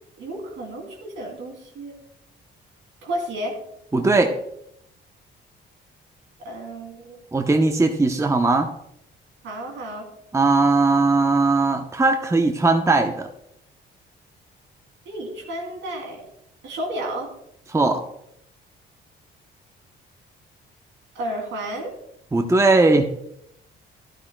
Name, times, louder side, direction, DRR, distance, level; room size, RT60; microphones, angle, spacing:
voice 1, 0.2-1.9 3.0-3.5 6.4-7.3 9.4-10.1 15.1-16.2 16.6-17.3 21.1-21.9, right 1 dB, 75° right, 1 dB, 2.9 m, -32 dB
voice 2, 3.9-4.3 7.3-8.7 10.3-13.3 17.7-18.0 22.3-23.0, right 3 dB, 15° right, 5 dB, 0.8 m, -19 dB
12.5 x 12.0 x 2.2 m, 0.76 s
cardioid pair, 90°, 20 cm